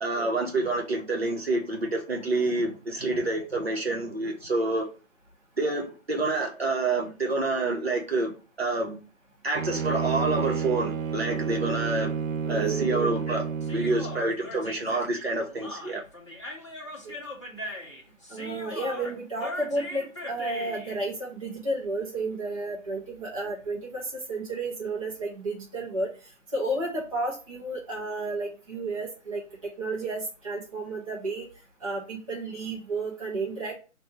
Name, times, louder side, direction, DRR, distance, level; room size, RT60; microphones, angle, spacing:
voice 1, 0.0-4.9 5.6-8.3 8.6-9.0 9.4-12.1 12.5-16.0, right 2 dB, 50° right, 1.2 m, -28 dB
Bowed string instrument, 9.6-14.3, right 6 dB, 85° right, 0.5 m, -30 dB
voice 2, 12.4-13.4 14.0-14.1 17.0-17.2 18.3-26.1 26.5-31.5 31.8-33.8, right 2 dB, 25° right, 0.9 m, -32 dB
Human voice, 13.6-21.0, left 1 dB, 25° left, 0.8 m, -39 dB
4.2 x 2.6 x 4.8 m
figure-of-eight pair, 155°, 40 cm